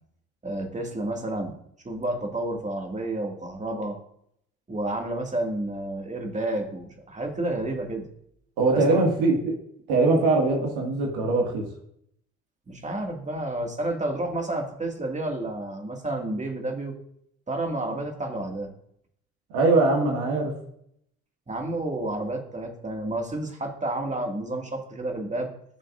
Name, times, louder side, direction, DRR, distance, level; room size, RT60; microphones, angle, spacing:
voice 1, 0.4-1.5 1.8-4.0 4.7-8.1 8.7-9.0 12.7-17.0 17.5-18.7 21.5-25.5, right 1 dB, 20° right, 2 dB, 2.2 m, -30 dB
voice 2, 8.6-9.5 9.9-11.7 19.5-20.5, right 3 dB, 65° right, 0 dB, 2.1 m, -22 dB
15.5 x 6.4 x 2.6 m, 0.70 s
figure-of-eight pair, 55°, 39 cm